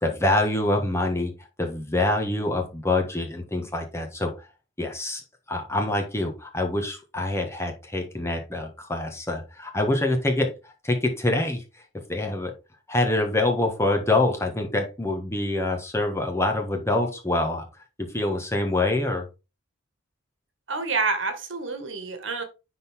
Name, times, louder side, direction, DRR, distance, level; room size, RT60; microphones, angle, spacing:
voice 1, 0.0-4.5 4.8-5.2 5.5-11.6 12.1-12.5 12.9-17.7 18.0-19.3, left 2 dB, 15° left, 1.4 m, -25 dB
voice 2, 20.7-22.4, right 4 dB, 65° right, 1.8 m, -28 dB
10.5 x 4.0 x 3.6 m
head